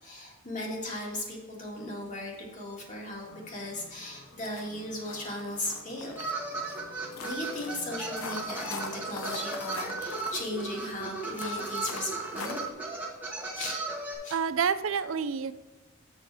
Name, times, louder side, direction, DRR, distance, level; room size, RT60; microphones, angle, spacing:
voice 1, 0.0-6.1 7.2-12.6 13.5-13.8 14.2-14.4, left 1 dB, 35° left, -2 dB, 2.0 m, -37 dB
Bells from Hell (One Shot), 3.2-10.6, left 3 dB, 70° left, 1.7 m, -52 dB
sound 1, 4.0-4.1 4.4-12.7, left 4 dB, 90° left, 0.9 m, -43 dB
sound 2, 6.2-14.2, right 3 dB, 10° right, 1.6 m, -36 dB
voice 2, 14.3-15.5, right 6 dB, 65° right, 14 dB, 0.5 m, -28 dB
7.3 x 6.0 x 4.7 m, 1.2 s
head